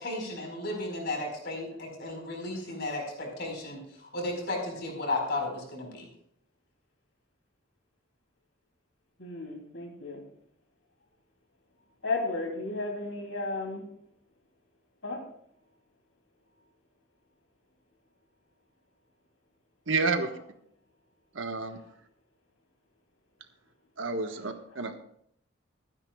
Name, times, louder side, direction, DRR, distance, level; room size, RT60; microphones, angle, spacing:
voice 1, 0.0-6.1, left 2 dB, 55° left, 1 dB, 4.7 m, -34 dB
voice 2, 9.2-10.2 12.0-13.9 15.0-15.2 24.2-24.3, left 3 dB, 80° left, 1 dB, 3.0 m, -34 dB
voice 3, 19.9-20.3 21.3-21.8 24.0-25.0, right 4 dB, 80° right, 6 dB, 1.3 m, -30 dB
23.5 x 9.8 x 2.4 m, 0.68 s
head